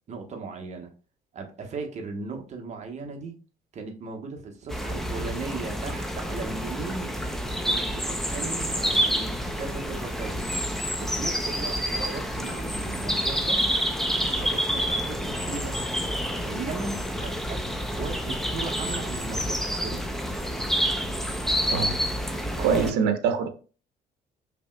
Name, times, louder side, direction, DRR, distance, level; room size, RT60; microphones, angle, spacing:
voice 1, 0.1-0.9 1.3-3.4 3.7-7.1 7.6-10.4 11.0-13.6 14.3-15.9 16.5-17.6 18.0-20.1 22.6-22.9, right 4 dB, 45° right, 1.1 m, -37 dB
sound 1, 4.7-22.9, equal, ahead, 0.5 m, -28 dB
voice 2, 22.6-23.5, right 6 dB, 80° right, 0.7 m, -24 dB
5.2 x 2.9 x 2.2 m
cardioid pair, 110°, 17 cm